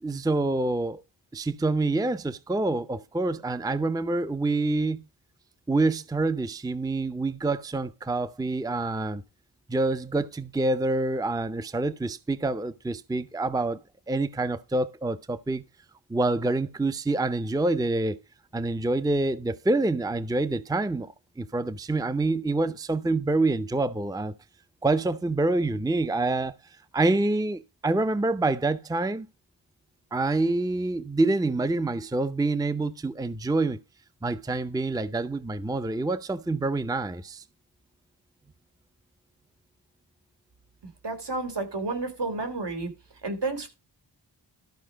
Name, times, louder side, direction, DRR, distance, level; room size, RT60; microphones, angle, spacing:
voice 1, 0.0-1.0 1.3-5.0 5.7-9.2 9.7-13.8 14.1-15.6 16.1-18.2 18.5-24.3 24.8-26.5 26.9-29.3 30.1-33.8 34.2-37.4, right 2 dB, 10° right, 0.6 m, -26 dB
voice 2, 41.0-42.9 43.2-43.7, right 3 dB, 70° right, 3.8 m, -31 dB
13.0 x 5.5 x 5.0 m
wide cardioid pair, 90°, 43 cm